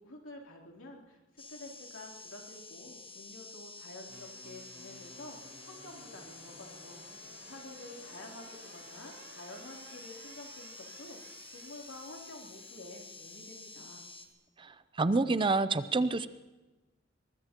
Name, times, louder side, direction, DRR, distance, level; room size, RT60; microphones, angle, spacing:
voice 1, 0.0-14.0, left 1 dB, 75° left, -1 dB, 3.2 m, -50 dB
sound 1, 1.4-14.3, left 4 dB, 25° left, 1.5 m, -50 dB
sound 2, 4.1-14.3, right 3 dB, 70° right, 4.2 m, -56 dB
voice 2, 14.6-16.3, right 3 dB, 25° right, 13 dB, 0.5 m, -28 dB
23.0 x 21.0 x 3.0 m, 1.2 s
head